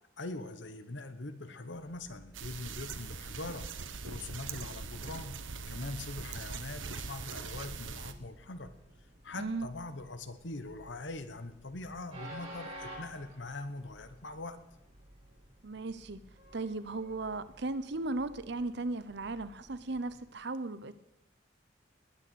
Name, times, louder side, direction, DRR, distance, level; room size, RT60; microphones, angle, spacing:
voice 1, 0.2-3.7 4.0-5.4 5.7-8.7 9.2-14.6, left 2 dB, 65° left, 1.2 m, -42 dB
Train, 1.7-20.3, equal, 30° right, 5.2 m, -54 dB
sound 1, 2.3-8.1, right 4 dB, 80° right, 1.1 m, -42 dB
voice 2, 15.6-16.2 16.5-21.0, right 2 dB, 60° right, 0.8 m, -36 dB
20.0 x 6.8 x 8.4 m
head